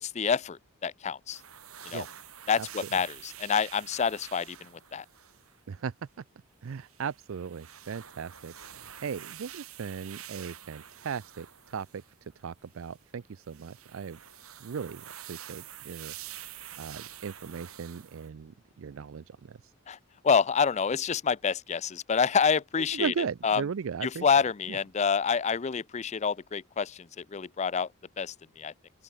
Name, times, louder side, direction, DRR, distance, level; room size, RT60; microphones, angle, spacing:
voice 1, 0.0-1.4 1.9-2.0 2.5-5.0 19.9-20.0 20.2-23.1 23.4-23.6 24.0-27.9 28.2-28.7, left 6 dB, 30° left, 0.4 m, -27 dB
sound 1, 1.3-5.6 6.7-12.1 12.7-13.0 13.4-18.3, right 11 dB, 85° right, 4.9 m, -47 dB
voice 2, 6.6-14.2 14.6-16.1 16.8-19.7 22.9-24.3 24.7-24.8, right 6 dB, 65° right, 0.4 m, -37 dB
open air
head